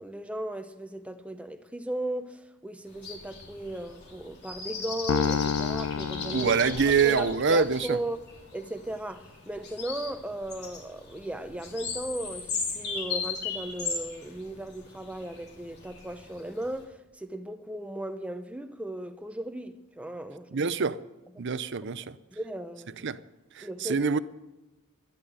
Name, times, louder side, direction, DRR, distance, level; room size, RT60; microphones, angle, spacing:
voice 1, 0.0-8.2 8.5-20.8 21.3-21.6 22.3-22.9 23.6-24.0, right 1 dB, 5° right, 0.8 m, -36 dB
sound 1, 2.9-16.8, left 5 dB, 50° left, 3.7 m, -38 dB
sound 2, 5.1-7.5, left 6 dB, 75° left, 0.4 m, -30 dB
voice 2, 6.3-8.0 20.5-21.0 21.4-22.2 23.0-23.2 23.6-24.2, right 5 dB, 55° right, 0.6 m, -25 dB
12.5 x 11.5 x 7.9 m
head